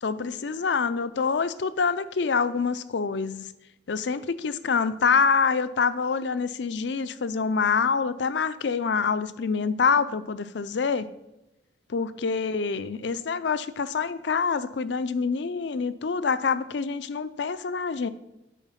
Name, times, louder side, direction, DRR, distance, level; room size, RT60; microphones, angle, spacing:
voice 1, 0.0-3.5 3.9-11.1 11.9-18.1, left 5 dB, 70° left, 14 dB, 0.5 m, -26 dB
9.1 x 4.9 x 5.8 m, 0.93 s
head